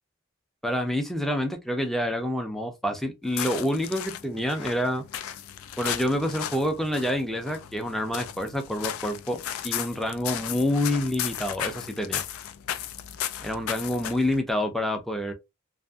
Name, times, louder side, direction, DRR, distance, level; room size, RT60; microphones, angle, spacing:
voice 1, 0.6-5.0 5.8-12.2 13.4-15.3, left 1 dB, ahead, 0.4 m, -27 dB
sound 1, 3.2-14.4, left 10 dB, 75° left, 0.3 m, -35 dB
2.6 x 2.6 x 2.2 m
head